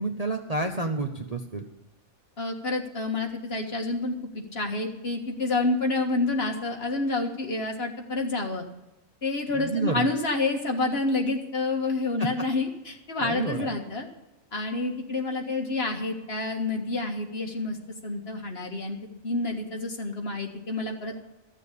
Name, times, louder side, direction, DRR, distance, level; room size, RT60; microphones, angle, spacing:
voice 1, 0.0-1.6 9.5-10.1 12.2-12.4 13.2-13.7, right 2 dB, 35° right, 3 dB, 0.8 m, -29 dB
voice 2, 2.4-8.6 9.2-14.1 14.5-17.8 18.0-19.0 19.2-21.2, left 2 dB, 45° left, 2 dB, 1.9 m, -28 dB
14.5 x 7.2 x 8.3 m, 0.97 s
omnidirectional pair, 1.5 m